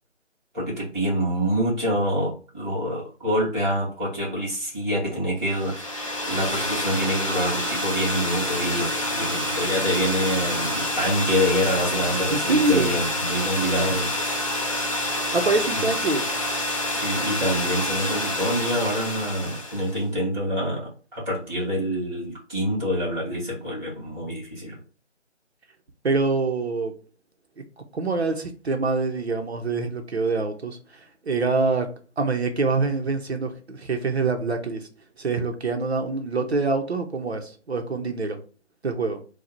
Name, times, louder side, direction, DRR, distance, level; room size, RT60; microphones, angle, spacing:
voice 1, 0.5-5.9 6.3-14.5 15.7-15.8 16.9-24.8, equal, ahead, -16 dB, 1.2 m, -26 dB
sound 1, 5.5-20.0, left 1 dB, 25° left, 0.7 m, -27 dB
voice 2, 12.3-12.9 15.3-16.3 26.0-26.9 27.9-30.8 31.2-31.9 32.2-34.9 35.2-38.4 38.8-39.2, right 3 dB, 60° right, 5 dB, 0.8 m, -25 dB
3.9 x 2.3 x 4.4 m, 0.37 s
figure-of-eight pair, 165°, 36 cm